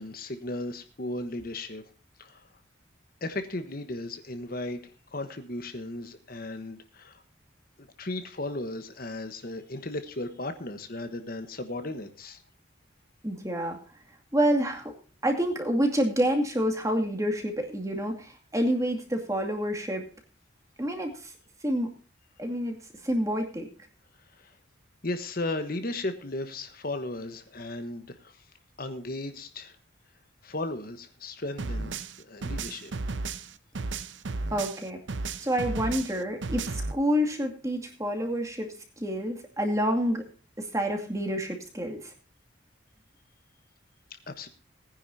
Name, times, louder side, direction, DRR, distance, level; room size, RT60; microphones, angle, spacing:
voice 1, 0.0-1.8 2.2-2.5 3.2-7.2 8.0-12.4 24.4-24.5 25.0-28.4 28.8-29.8 30.4-33.0 44.3-44.5, left 2 dB, 50° left, 8 dB, 1.2 m, -36 dB
voice 2, 13.2-13.8 14.3-14.9 15.2-20.1 20.8-21.3 21.6-21.9 22.4-22.8 23.0-23.7 34.5-35.0 35.4-40.2 40.6-42.1, equal, 15° right, 3 dB, 2.3 m, -28 dB
sound 1, 31.6-34.8 35.1-36.9, right 3 dB, 70° right, 0.8 m, -33 dB
19.5 x 10.0 x 2.7 m, 0.38 s
head